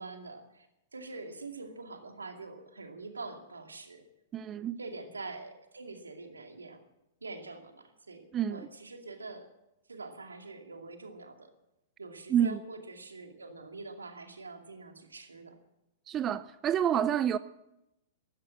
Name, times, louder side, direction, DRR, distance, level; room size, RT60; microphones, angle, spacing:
voice 1, 0.0-4.1 4.8-6.8 7.2-9.5 9.9-11.5 12.0-15.6, right 3 dB, 85° right, 2.4 m, -45 dB
voice 2, 4.3-4.8 8.3-8.7 12.3-12.6 16.1-17.4, right 9 dB, 25° right, 0.5 m, -28 dB
14.0 x 13.5 x 7.7 m
figure-of-eight pair, 105°, 0 cm